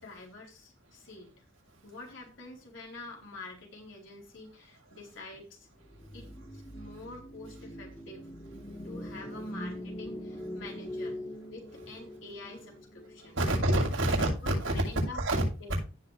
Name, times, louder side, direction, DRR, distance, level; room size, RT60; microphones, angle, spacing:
voice 1, 0.0-1.4 1.8-5.7 6.1-8.3 8.8-11.2 11.5-13.4 14.2-15.2 15.6-15.7, left 3 dB, 65° left, 4.4 m, -47 dB
sound 1, 5.8-14.1, equal, 25° left, 1.7 m, -43 dB
voice 2, 13.4-14.8 15.1-15.4, right 1 dB, 75° right, 6.3 m, -27 dB
17.0 x 6.2 x 3.4 m
head